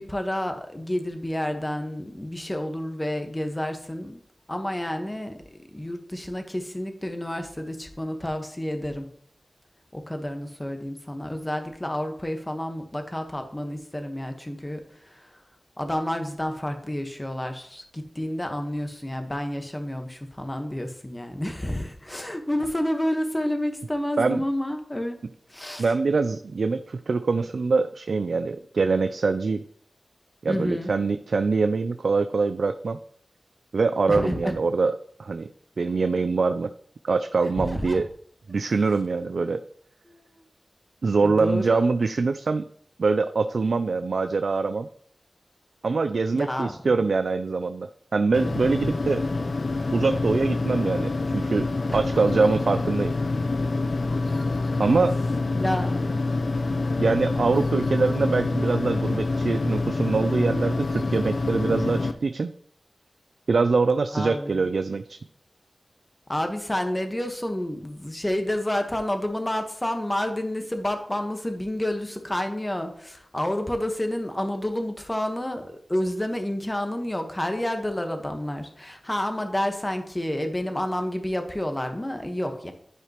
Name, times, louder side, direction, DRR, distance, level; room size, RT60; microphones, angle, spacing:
voice 1, 0.0-4.2 4.5-5.4 5.7-9.1 9.9-15.3 15.8-25.2 25.5-25.9 30.5-30.9 34.1-34.6 37.7-38.0 40.1-40.4 41.2-41.9 46.3-47.1 51.9-52.0 55.5-56.0 64.1-64.7 66.3-82.7, left 1 dB, 20° left, 5 dB, 1.2 m, -29 dB
voice 2, 25.8-29.6 30.4-33.0 33.7-35.5 35.8-36.7 37.0-38.1 38.5-39.6 41.0-42.6 43.0-44.9 45.8-49.3 49.9-53.1 54.8-55.2 57.0-62.5 63.5-65.2, right 4 dB, 85° right, 10 dB, 0.3 m, -24 dB
sound 1, 48.3-62.1, left 3 dB, 70° left, 0.6 m, -26 dB
11.0 x 4.9 x 3.0 m, 0.64 s
wide cardioid pair, 50°, 0 cm